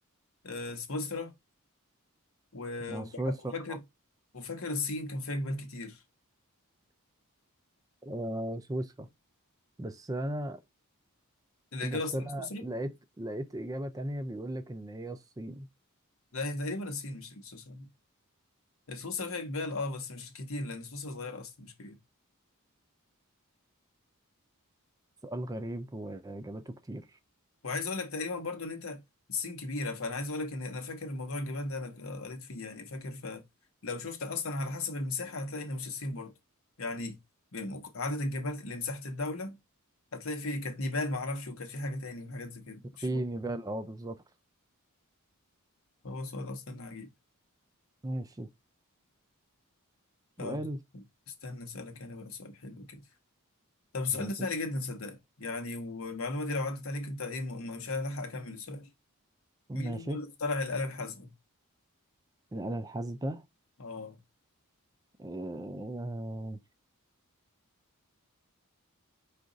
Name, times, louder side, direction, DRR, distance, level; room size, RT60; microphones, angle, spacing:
voice 1, 0.4-1.3 2.5-3.8 4.3-6.0 11.7-12.7 16.3-17.9 18.9-22.0 27.6-29.0 29.3-33.4 33.8-36.3 36.8-37.2 37.5-39.6 40.1-43.2 46.0-47.1 50.4-50.7 50.9-53.0 53.9-58.9 59.7-61.3 63.8-64.2, left 2 dB, 65° left, 0.9 m, -36 dB
voice 2, 2.9-3.8 8.0-9.1 9.8-10.6 11.8-15.7 25.2-27.2 43.0-44.2 48.0-48.5 50.4-50.8 54.1-54.3 59.7-60.2 62.5-63.4 65.2-66.6, right 1 dB, 15° right, 0.3 m, -36 dB
4.9 x 2.5 x 3.8 m
head